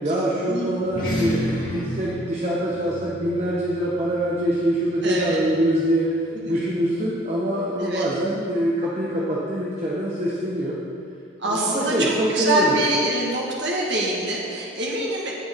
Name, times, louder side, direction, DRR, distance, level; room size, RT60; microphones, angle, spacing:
voice 1, 0.0-6.1 6.5-10.8 11.4-12.7, right 1 dB, 35° right, -5 dB, 1.2 m, -24 dB
sound 1, 0.8-5.6, left 1 dB, 45° left, 2.2 m, -31 dB
voice 2, 5.0-5.4 6.3-6.5 7.8-8.1 11.4-15.3, right 1 dB, 60° right, -3 dB, 1.6 m, -25 dB
17.5 x 6.2 x 3.6 m, 2.4 s
head